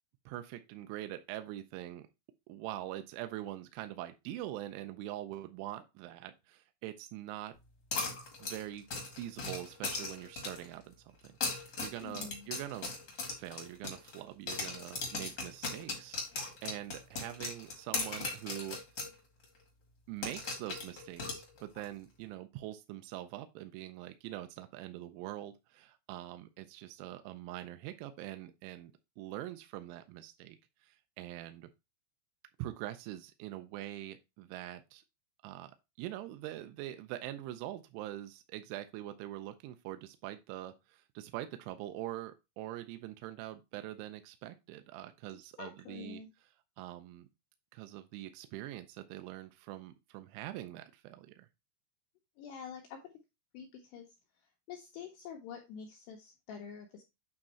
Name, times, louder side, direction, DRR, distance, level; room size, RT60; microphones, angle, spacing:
voice 1, 0.3-2.0 2.5-7.6 8.4-8.8 9.1-12.9 13.2-16.2 16.6-18.8 20.1-28.9 29.2-30.6 30.8-31.7 32.6-35.0 35.4-46.2 46.8-47.3 47.7-51.5, right 14 dB, 80° right, 8 dB, 2.9 m, -44 dB
sound 1, 7.9-10.7 11.2-14.2 14.5-19.1 19.4-19.5 20.2-21.8, left 3 dB, 45° left, 1.6 m, -38 dB
voice 2, 12.0-12.5 45.6-46.3 52.4-53.0 53.5-54.1 54.7-57.0, left 7 dB, 75° left, 1 dB, 2.5 m, -47 dB
8.9 x 3.6 x 4.3 m, 0.24 s
omnidirectional pair, 5.8 m